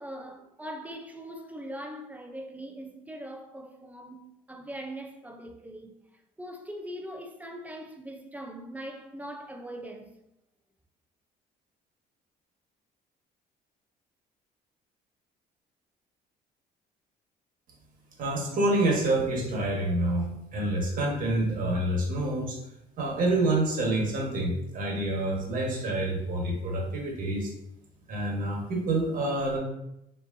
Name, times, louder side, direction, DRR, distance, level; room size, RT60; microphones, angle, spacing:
voice 1, 0.0-5.9 6.4-10.1, right 1 dB, 10° right, 0.6 m, -41 dB
voice 2, 18.2-22.6 23.0-27.5 28.1-29.6, right 1 dB, 55° right, 1.4 m, -27 dB
5.0 x 3.0 x 2.6 m
cardioid pair, 110°, 17 cm